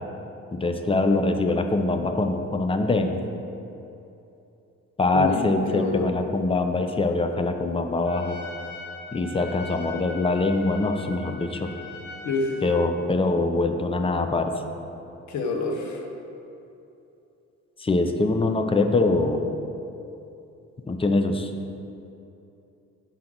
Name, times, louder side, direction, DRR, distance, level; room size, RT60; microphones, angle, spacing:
voice 1, 0.5-3.2 5.0-8.4 9.1-11.7 12.6-14.5 17.8-19.4 20.9-21.5, left 2 dB, 20° left, 6 dB, 0.5 m, -23 dB
voice 2, 5.1-6.1 12.2-12.6 15.3-16.0, left 3 dB, 70° left, 2 dB, 0.9 m, -27 dB
Trumpet, 8.0-12.9, left 2 dB, 35° left, 0.9 m, -41 dB
5.6 x 3.8 x 6.0 m, 2.8 s
cardioid pair, 90°, 30 cm